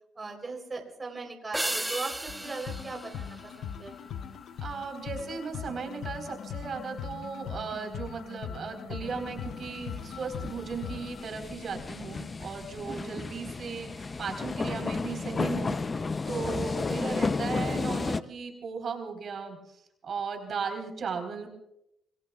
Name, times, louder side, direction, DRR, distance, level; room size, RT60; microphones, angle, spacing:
voice 1, 0.2-4.2 12.9-13.2, right 3 dB, 25° right, 2 dB, 3.8 m, -39 dB
sound 1, 1.5-4.2, right 1 dB, 10° right, 1.9 m, -35 dB
sound 2, 2.3-11.3, left 8 dB, 70° left, 0.9 m, -40 dB
voice 2, 4.6-15.8 16.3-19.6 20.0-21.5, right 5 dB, 55° right, 4 dB, 4.1 m, -36 dB
sound 3, 9.1-18.2, left 4 dB, 30° left, 0.6 m, -33 dB
27.5 x 21.0 x 2.4 m, 0.81 s
cardioid pair, 90°, 0 cm